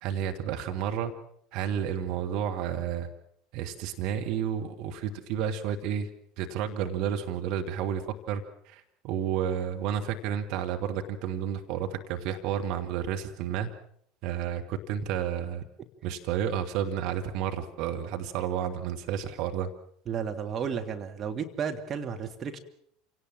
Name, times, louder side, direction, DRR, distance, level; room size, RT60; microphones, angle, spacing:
voice 1, 0.0-1.1 1.5-3.1 3.5-6.1 6.4-8.0 8.3-13.7 14.2-15.6 16.0-19.7, right 9 dB, 50° right, 4 dB, 2.0 m, -31 dB
voice 2, 20.1-22.6, right 7 dB, 30° right, 5 dB, 2.1 m, -33 dB
28.0 x 18.0 x 7.4 m, 0.68 s
figure-of-eight pair, 70°, 0 cm